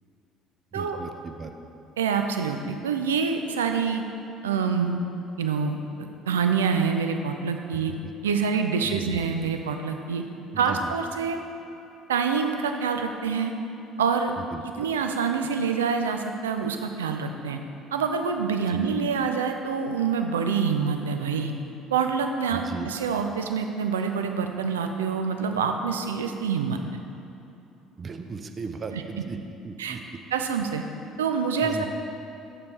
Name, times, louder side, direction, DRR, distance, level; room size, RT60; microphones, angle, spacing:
voice 1, 0.7-1.5 8.8-9.2 10.7-10.9 14.4-14.6 18.7-18.9 22.5-22.9 28.0-29.4 29.6-30.0 31.6-31.9, right 5 dB, 35° right, 6 dB, 0.6 m, -36 dB
voice 2, 2.0-4.0 4.4-5.0 5.4-7.9 8.2-10.2 10.6-11.4 12.1-13.5 14.0-14.3 14.8-17.6 17.9-21.5 21.9-27.0 28.9-29.0 29.8-30.0 30.3-30.8 31.2-31.9, right 6 dB, 75° right, 6 dB, 0.4 m, -26 dB
6.8 x 6.6 x 4.3 m, 2.9 s
figure-of-eight pair, 55°, 0 cm